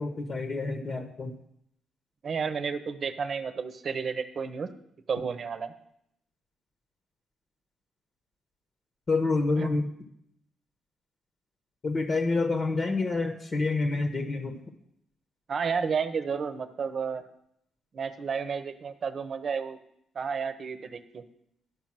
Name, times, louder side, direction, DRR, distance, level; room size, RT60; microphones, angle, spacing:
voice 1, 0.0-1.4 9.1-9.9 11.8-14.6, left 3 dB, 40° left, 6 dB, 1.2 m, -28 dB
voice 2, 2.2-4.7 5.1-5.7 9.6-9.7 15.5-17.2 17.9-19.8 20.1-21.2, right 6 dB, 45° right, 11 dB, 0.9 m, -31 dB
11.0 x 5.4 x 7.5 m, 0.74 s
cardioid pair, 90°, 0 cm